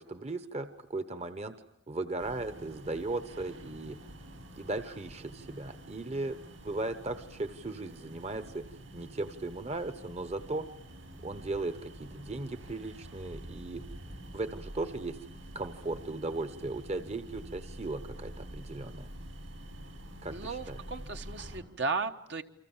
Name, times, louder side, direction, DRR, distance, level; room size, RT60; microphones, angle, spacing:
voice 1, 0.0-1.5 1.9-4.0 4.6-6.4 6.6-10.7 11.2-13.8 14.3-15.2 15.5-19.1 20.2-20.8, right 2 dB, 35° right, 10 dB, 1.0 m, -37 dB
sound 1, 2.2-21.6, right 1 dB, 80° right, 6.1 m, -47 dB
voice 2, 20.3-22.4, right 4 dB, 65° right, 6 dB, 1.3 m, -35 dB
29.0 x 25.0 x 7.3 m, 0.80 s
head